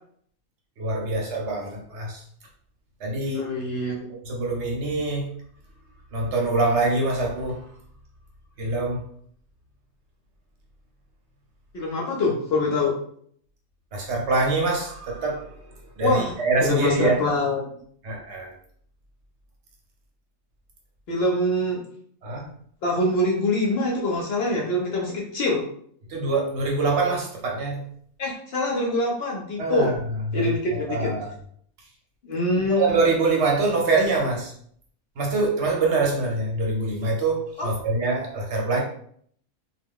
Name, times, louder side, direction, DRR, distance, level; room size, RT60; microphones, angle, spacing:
voice 1, 0.8-2.2 3.0-3.5 4.3-5.3 6.1-7.6 8.6-9.0 13.9-15.5 16.0-17.2 18.0-18.5 22.2-22.4 26.1-27.8 29.6-29.9 30.3-30.6 30.9-31.3 32.7-34.5 35.2-38.8, right 3 dB, 60° right, -1 dB, 0.9 m, -24 dB
voice 2, 3.3-4.1 11.7-13.0 16.0-16.3 16.6-17.6 21.1-21.8 22.8-25.6 28.2-30.0 30.3-31.1 32.2-32.9 37.6-37.7, left 2 dB, 60° left, -1 dB, 0.7 m, -24 dB
2.4 x 2.2 x 3.5 m, 0.63 s
omnidirectional pair, 1.5 m